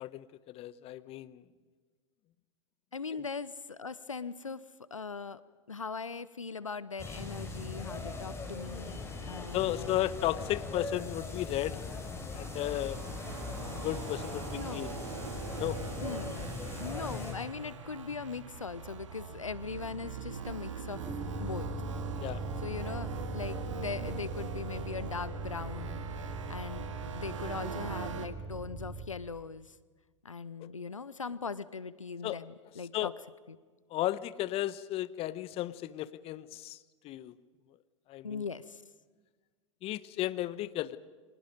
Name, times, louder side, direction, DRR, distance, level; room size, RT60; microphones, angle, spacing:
voice 1, 0.0-1.4 3.2-3.3 9.5-11.8 12.3-13.0 13.8-14.9 15.6-15.8 22.2-22.4 30.6-30.7 32.2-32.4 32.9-33.1 33.9-36.8 37.0-37.3 38.1-38.5 39.8-41.0, left 14 dB, 35° left, 17 dB, 1.0 m, -34 dB
voice 2, 2.9-5.4 5.7-10.1 14.6-14.9 16.0-16.5 16.8-21.1 21.4-21.7 22.6-26.1 26.5-29.8 30.2-33.1 33.5-33.6 38.2-38.8, left 5 dB, 90° left, 18 dB, 0.8 m, -40 dB
sound 1, 7.0-17.3, left 3 dB, 15° left, 5.5 m, -40 dB
sound 2, 12.1-28.3, right 6 dB, 75° right, 2.1 m, -43 dB
sound 3, 20.9-29.1, right 2 dB, 15° right, 5.4 m, -40 dB
30.0 x 24.5 x 5.2 m, 1.4 s
figure-of-eight pair, 90°, 16 cm